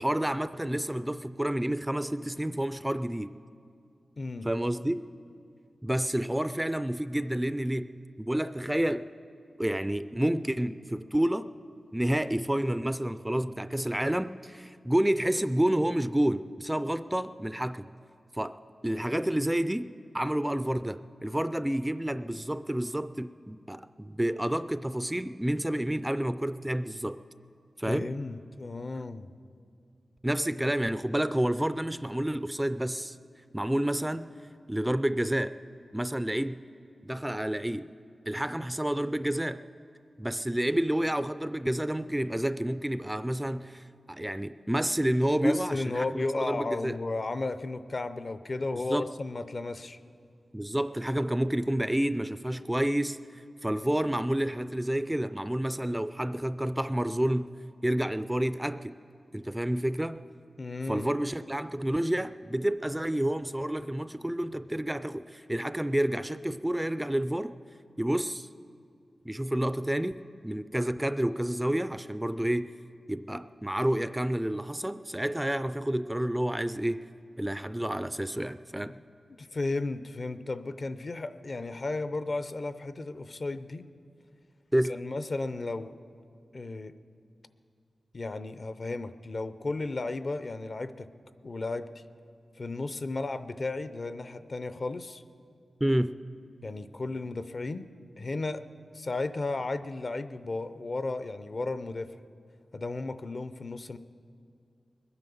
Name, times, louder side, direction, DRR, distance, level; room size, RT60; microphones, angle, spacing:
voice 1, 0.0-3.3 4.4-5.0 5.8-7.9 8.2-9.0 9.6-11.5 11.9-17.9 18.3-18.6 18.8-19.9 20.1-27.2 27.8-28.1 30.2-33.2 33.5-34.3 34.7-35.6 35.9-36.6 37.0-37.9 38.3-39.6 40.2-47.0 48.9-49.1 50.5-53.2 53.6-57.5 57.8-59.0 59.3-60.2 60.9-67.5 68.0-68.5 69.3-72.7 73.1-77.0 77.4-78.9 84.7-84.9 95.8-96.2, right 1 dB, 10° right, 13 dB, 0.3 m, -29 dB
voice 2, 4.2-4.5 27.9-29.3 45.4-50.0 60.6-61.1 79.4-83.9 84.9-85.9 86.5-86.9 88.1-91.1 91.4-92.0 92.6-95.2 96.6-97.9 98.2-98.7 98.9-102.2 102.7-104.0, left 3 dB, 45° left, 12 dB, 0.6 m, -34 dB
21.0 x 9.8 x 7.0 m, 2.3 s
wide cardioid pair, 100°, 0 cm